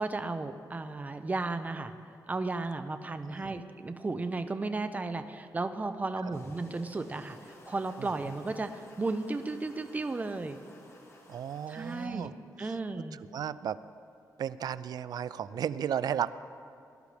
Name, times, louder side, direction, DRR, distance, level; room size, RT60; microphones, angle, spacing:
voice 1, 0.0-1.9 2.3-10.6 11.7-13.2, right 3 dB, 25° right, 9 dB, 0.6 m, -34 dB
voice 2, 3.2-3.5 6.3-6.4 8.0-8.3 11.3-12.3 12.6-12.8 13.3-13.8 14.4-16.3, right 9 dB, 70° right, 16 dB, 0.3 m, -34 dB
sound 1, 6.3-12.1, left 2 dB, 40° left, 1.5 m, -55 dB
18.5 x 11.5 x 3.3 m, 2.5 s
wide cardioid pair, 115°, 7 cm